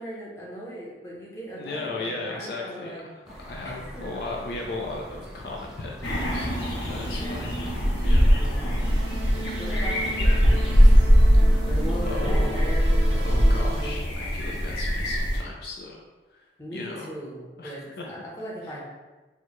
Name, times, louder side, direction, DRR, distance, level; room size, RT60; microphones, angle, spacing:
voice 1, 0.0-3.1 3.3-4.0 7.0-7.8 8.3-9.1 9.6-11.0 11.6-14.1 16.6-18.8, equal, 15° left, -6 dB, 0.8 m, -39 dB
voice 2, 1.5-6.5 6.9-7.6 8.0-8.4 11.3-11.5 12.0-12.6 13.2-16.0 16.3-16.5 16.7-17.1 17.6-18.2, left 2 dB, 60° left, -1 dB, 0.4 m, -36 dB
sound 1, 3.2-13.5, equal, 5° right, 0.4 m, -43 dB
sound 2, 6.0-15.4, equal, 85° left, 0.7 m, -21 dB
sound 3, 8.8-13.9, right 1 dB, 75° right, 0.4 m, -37 dB
4.5 x 2.2 x 3.0 m, 1.2 s
head